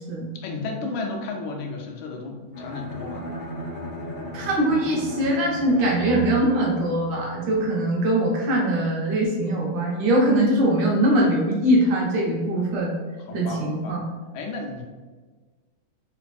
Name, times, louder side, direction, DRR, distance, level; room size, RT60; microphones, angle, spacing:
voice 1, 0.4-3.3 13.3-14.0 14.3-14.8, left 3 dB, 80° left, 1 dB, 1.3 m, -33 dB
Bowed string instrument, 2.5-7.6, right 1 dB, 40° left, 0.5 m, -35 dB
voice 2, 4.3-12.9 13.3-14.0, right 1 dB, 70° right, -3 dB, 1.4 m, -22 dB
3.3 x 3.3 x 2.3 m, 1.4 s
omnidirectional pair, 2.3 m